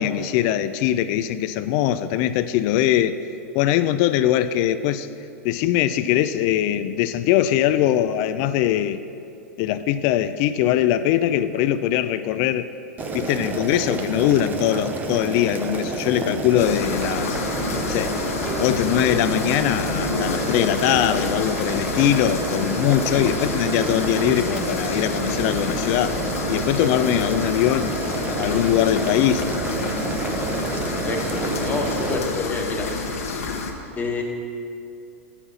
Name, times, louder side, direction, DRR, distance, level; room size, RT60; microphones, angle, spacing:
voice 1, 0.0-3.2 3.5-5.1 5.4-9.0 9.6-12.7 13.1-17.4 17.8-18.2 18.6-26.2 26.5-28.0 28.4-29.4, left 12 dB, 50° left, 12 dB, 0.3 m, -21 dB
Boiling, 13.0-32.2, right 3 dB, 20° right, 0.7 m, -29 dB
sound 1, 16.6-33.7, left 4 dB, 80° left, 1.0 m, -29 dB
sound 2, 18.5-21.5 23.1-24.6, right 6 dB, 55° right, 0.7 m, -36 dB
voice 2, 30.8-33.2 33.9-34.2, left 3 dB, 20° left, 1 dB, 1.2 m, -29 dB
7.1 x 5.6 x 6.9 m, 2.6 s
hypercardioid pair, 110°, 8 cm